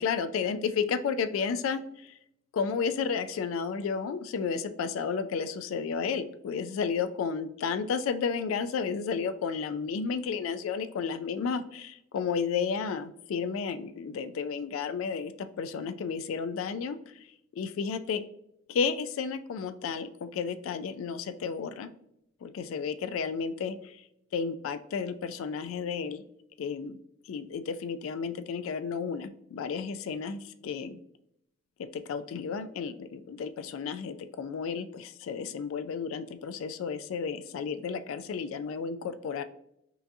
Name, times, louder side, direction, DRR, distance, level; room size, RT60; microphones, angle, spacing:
voice 1, 0.0-1.8 2.1-2.2 2.5-15.3 15.6-17.0 17.6-18.2 18.7-21.9 22.4-24.0 24.3-26.2 26.6-27.0 27.3-31.0 31.8-39.4, left 6 dB, 90° left, 10 dB, 0.3 m, -32 dB
5.6 x 2.6 x 2.6 m, 0.75 s
head